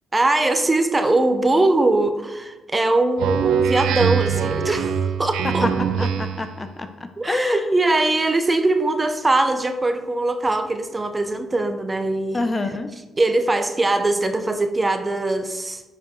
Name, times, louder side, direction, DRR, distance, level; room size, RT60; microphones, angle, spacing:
voice 1, 0.1-5.7 6.0-6.1 7.2-12.5 13.2-15.8, right 2 dB, 20° right, 8 dB, 0.6 m, -21 dB
Speech synthesizer, 3.2-6.5, right 7 dB, 85° right, 0.5 m, -23 dB
voice 2, 6.0-7.8 12.3-12.9, left 2 dB, 25° left, 8 dB, 0.6 m, -27 dB
10.0 x 4.7 x 3.1 m, 1.1 s
cardioid pair, 90°, 0 cm